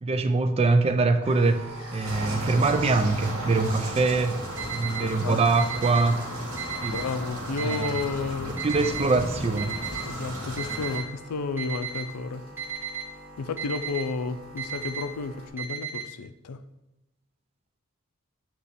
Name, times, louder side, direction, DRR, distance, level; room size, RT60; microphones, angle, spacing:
voice 1, 0.0-4.4 4.7-6.3 6.8-7.0 7.6-7.9 8.5-9.8, right 3 dB, 25° right, 0.4 m, -24 dB
sound 1, 1.2-15.5, right 1 dB, 25° left, 2.1 m, -45 dB
sound 2, 2.0-11.0, right 1 dB, 70° right, 1.7 m, -35 dB
Alarm, 4.6-5.0 5.6-6.0 6.6-7.0 7.6-8.0 8.6-9.0 9.6-10.0 10.6-11.0 11.6-12.0 12.6-13.0 13.6-14.0 14.6-15.0 15.6-16.0, right 10 dB, 10° right, 1.1 m, -33 dB
voice 2, 5.0-5.4 6.9-8.6 10.1-12.4 13.4-16.6, left 4 dB, 90° left, 0.4 m, -32 dB
8.2 x 3.0 x 4.1 m
head